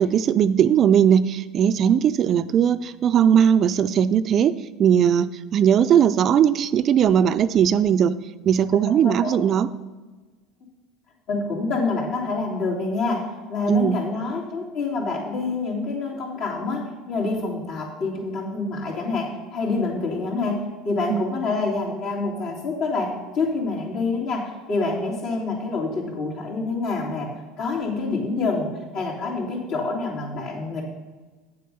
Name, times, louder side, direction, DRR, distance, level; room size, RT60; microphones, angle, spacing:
voice 1, 0.0-4.5 4.8-8.1 8.5-9.7 13.7-14.0 21.1-21.3, right 8 dB, 45° right, 13 dB, 0.4 m, -19 dB
voice 2, 8.7-9.4 11.3-13.2 13.5-20.6 20.8-27.3 27.6-30.8, left 3 dB, 60° left, -3 dB, 3.3 m, -27 dB
8.5 x 7.5 x 5.5 m, 1.3 s
supercardioid pair, 100°, 0 cm